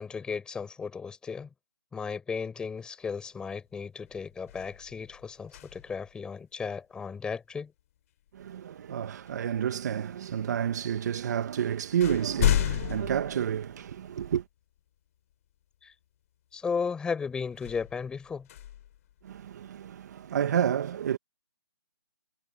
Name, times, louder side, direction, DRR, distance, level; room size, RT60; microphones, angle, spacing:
voice 1, 0.0-1.5 1.9-7.7 15.8-15.9 16.5-18.5, left 5 dB, 5° left, 4.4 m, -35 dB
sound 1, 3.4-3.7 4.0-6.1 8.3-8.5 9.3-10.0 10.9-11.0 11.4-14.2 14.8-14.9 17.5-19.7, left 12 dB, 35° left, 3.3 m, -33 dB
voice 2, 8.3-14.4 19.2-21.2, right 9 dB, 45° right, 1.7 m, -30 dB
hypercardioid pair, 160°, 13 cm